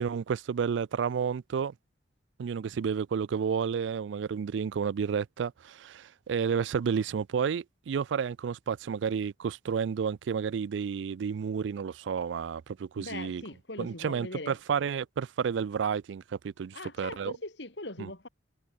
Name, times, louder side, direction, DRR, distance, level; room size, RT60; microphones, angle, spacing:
voice 1, 0.0-1.7 2.4-13.4 13.8-17.3 18.0-18.1, right 6 dB, 80° right, 0.4 m, -31 dB
voice 2, 13.0-14.6 16.7-18.3, left 2 dB, 70° left, 3.8 m, -41 dB
head